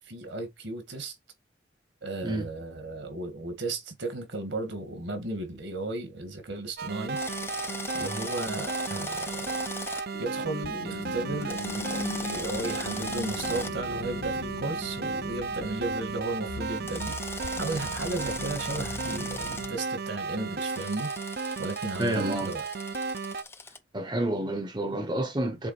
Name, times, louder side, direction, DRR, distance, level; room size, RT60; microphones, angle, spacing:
voice 1, 0.1-1.2 2.0-7.2 7.9-9.5 10.2-21.1 21.6-22.6, right 2 dB, 70° right, 1.8 m, -35 dB
sound 1, 6.8-23.4, right 4 dB, 55° right, 0.5 m, -34 dB
Drill, 7.2-10.0 11.4-13.7 16.9-19.7 20.6-23.8, left 4 dB, 15° left, 0.4 m, -40 dB
sound 2, 10.1-19.7, left 4 dB, 80° left, 0.6 m, -40 dB
voice 2, 22.0-22.5 23.9-25.7, right 1 dB, 25° right, 0.8 m, -29 dB
7.3 x 3.6 x 4.2 m
head